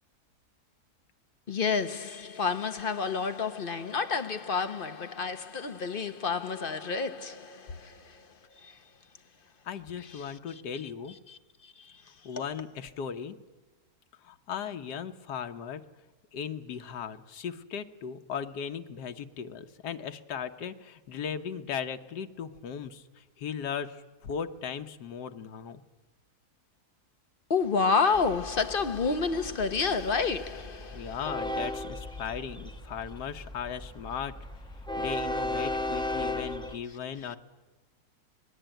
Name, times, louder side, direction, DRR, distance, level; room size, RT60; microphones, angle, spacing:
voice 1, 1.5-8.3 8.6-8.8 10.2-10.3 11.3-11.9 12.3-12.4 27.5-31.2, left 5 dB, 40° left, 1.0 m, -30 dB
voice 2, 9.6-11.2 12.2-13.4 14.2-15.8 16.3-25.8 30.9-34.3 35.0-37.4, left 7 dB, 85° left, 1.6 m, -37 dB
Train, 28.1-36.8, left 1 dB, 5° left, 1.1 m, -36 dB
26.0 x 19.5 x 9.1 m
omnidirectional pair, 1.7 m